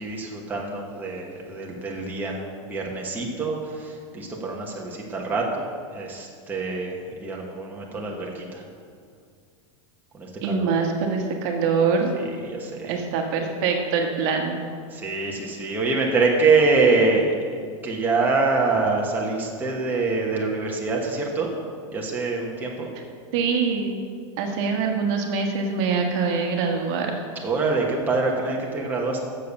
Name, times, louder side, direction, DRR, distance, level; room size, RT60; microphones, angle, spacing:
voice 1, 0.0-6.9 7.2-8.6 10.1-10.7 12.4-12.9 14.9-21.5 21.9-22.9 27.4-29.2, right 3 dB, 10° right, -2 dB, 1.1 m, -25 dB
voice 2, 10.4-12.1 12.9-14.6 23.3-24.0 24.4-27.2, right 5 dB, 50° right, 2 dB, 1.2 m, -24 dB
7.6 x 6.7 x 6.9 m, 2.1 s
supercardioid pair, 150°, 16 cm